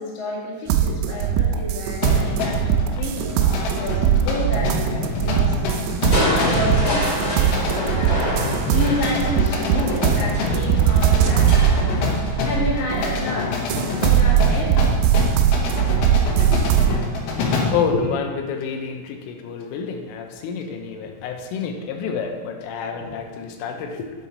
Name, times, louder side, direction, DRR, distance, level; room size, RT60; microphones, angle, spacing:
voice 1, 0.0-5.5 6.1-8.2 8.7-11.7 12.4-14.8 16.5-16.6 17.9-18.1, left 2 dB, 50° left, -5 dB, 2.7 m, -29 dB
sound 1, 0.7-13.3 13.7-17.0, right 9 dB, 85° right, 2.5 m, -20 dB
sound 2, 2.0-17.9, left 4 dB, 70° left, 3.0 m, -27 dB
Crushing, 6.1-14.1 15.6-16.1 16.6-16.7, equal, 30° left, 2.0 m, -27 dB
voice 2, 17.7-24.1, left 6 dB, 85° left, 4 dB, 3.3 m, -28 dB
8.8 x 8.4 x 4.1 m, 1.4 s
omnidirectional pair, 5.7 m